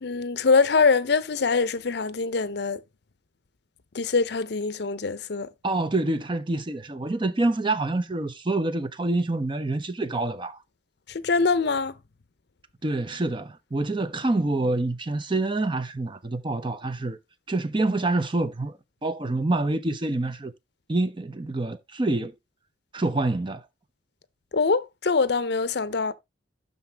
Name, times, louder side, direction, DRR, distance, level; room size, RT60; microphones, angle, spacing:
voice 1, 0.0-2.8 3.9-5.5 11.1-11.9 24.5-26.1, left 4 dB, 60° left, 0.6 m, -23 dB
voice 2, 5.6-10.6 12.8-17.2 17.5-20.5 20.9-22.3 22.9-23.6, right 2 dB, 25° right, 0.6 m, -26 dB
12.0 x 4.1 x 3.3 m
head